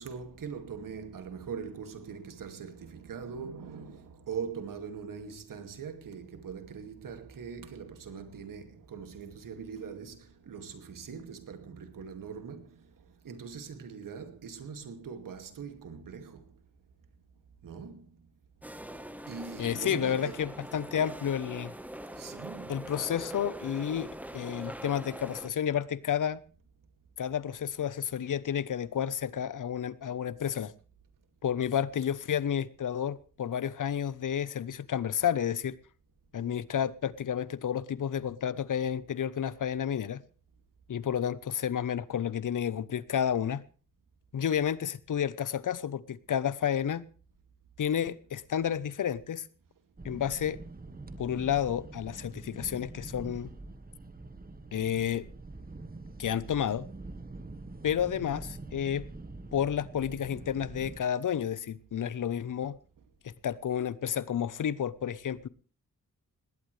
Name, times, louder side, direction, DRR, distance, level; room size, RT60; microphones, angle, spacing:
voice 1, 0.0-16.6 17.6-18.3 19.2-20.4 22.1-22.8, right 6 dB, 90° right, 2.4 m, -42 dB
sound 1, 18.6-25.5, right 1 dB, 5° right, 1.3 m, -43 dB
voice 2, 19.6-21.7 22.7-26.4 27.2-30.7 31.4-35.8 36.3-40.2 40.9-43.6 44.3-47.1 47.8-49.5 50.0-50.6 51.2-53.5 54.7-55.3 56.2-56.9 57.8-59.1 59.5-62.8 63.2-65.5, left 9 dB, 75° left, 0.9 m, -31 dB
sound 2, 50.0-61.0, right 2 dB, 30° right, 1.4 m, -45 dB
19.5 x 17.5 x 3.3 m
cardioid pair, 80°, 32 cm